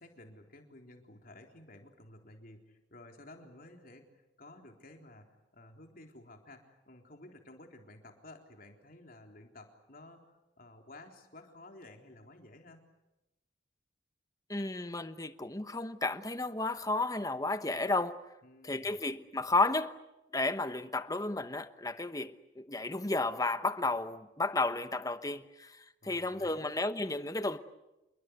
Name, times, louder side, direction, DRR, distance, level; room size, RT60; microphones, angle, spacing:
voice 1, 0.0-10.3 10.6-12.9 18.4-19.0 26.0-26.7, left 2 dB, 50° left, 3.9 m, -54 dB
voice 2, 14.5-18.2 18.6-19.9 20.3-27.6, left 2 dB, 20° left, 1.0 m, -33 dB
27.5 x 22.5 x 8.3 m
head